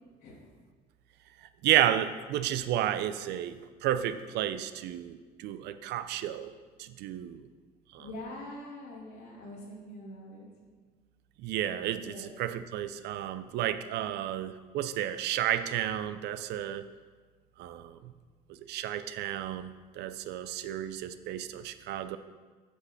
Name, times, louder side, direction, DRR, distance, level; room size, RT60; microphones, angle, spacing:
voice 1, 1.6-6.5 6.8-7.4 7.9-8.1 11.4-16.9 17.6-18.1 18.7-22.2, right 11 dB, 80° right, 12 dB, 0.5 m, -32 dB
voice 2, 8.0-10.5 12.1-12.4, left 1 dB, 80° left, -4 dB, 2.8 m, -44 dB
8.4 x 6.0 x 5.7 m, 1.4 s
cardioid pair, 110°, 17 cm